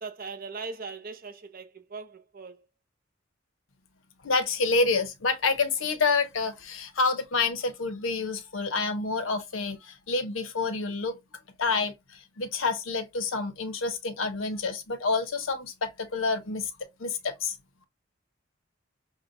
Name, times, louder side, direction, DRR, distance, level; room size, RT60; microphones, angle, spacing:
voice 1, 0.0-2.7, right 4 dB, 45° right, 0.7 m, -40 dB
voice 2, 4.2-11.2 11.6-16.7 17.0-17.6, left 4 dB, 90° left, 0.8 m, -28 dB
6.2 x 2.2 x 2.6 m
head